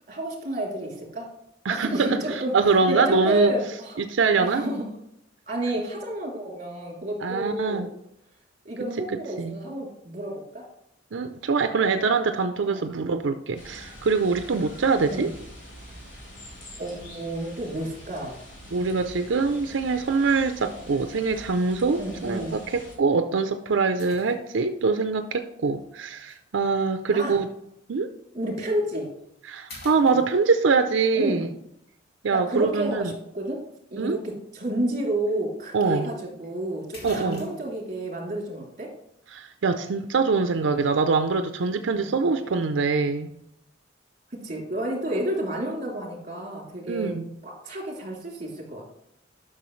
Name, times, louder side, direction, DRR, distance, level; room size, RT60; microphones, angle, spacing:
voice 1, 0.1-1.3 1.7-4.0 4.4-4.8 5.5-7.9 8.6-10.7 12.7-12.9 14.4-14.6 15.1-15.3 16.8-18.3 18.8-19.1 22.0-22.6 27.1-27.4 28.3-29.1 31.1-31.5 32.3-33.6 33.9-38.9 41.9-42.1 44.3-47.1 47.4-48.9, right 1 dB, 40° right, 2.8 m, -30 dB
voice 2, 1.7-3.5 4.0-4.6 7.2-7.9 9.4-9.6 11.1-15.3 18.7-27.5 27.9-28.1 29.5-31.5 32.2-33.1 34.0-34.2 35.7-36.1 37.0-37.4 39.3-43.3 46.9-47.3, right 4 dB, 90° right, 0.5 m, -24 dB
sound 1, 13.6-23.0, equal, 80° left, 3.2 m, -45 dB
sound 2, 21.5-21.8 22.5-22.6 24.0-24.8 26.3-26.4 28.6-28.8 29.2-29.4 29.7-30.8 34.9-35.0 35.3-35.4 36.4-36.5 36.9-37.8, left 1 dB, 55° left, 2.4 m, -45 dB
11.0 x 6.2 x 3.1 m
head